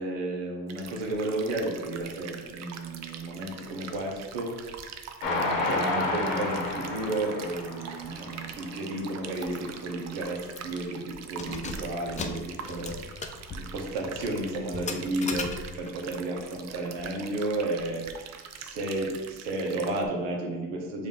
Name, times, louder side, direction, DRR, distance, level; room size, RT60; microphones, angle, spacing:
voice 1, 0.0-4.7 5.2-18.0 18.6-21.1, right 2 dB, 75° right, 0 dB, 1.1 m, -32 dB
sound 1, 0.7-20.1, right 7 dB, 45° right, 0.5 m, -44 dB
Train, 5.2-8.7 9.2-9.3 9.6-9.7, left 2 dB, 80° left, 1.0 m, -30 dB
Keys jangling, 9.4-9.6 9.9-10.0 10.5-10.8 11.3-16.0, left 4 dB, 20° left, 0.4 m, -38 dB
4.8 x 2.7 x 3.6 m, 1.3 s
supercardioid pair, 75°, 37 cm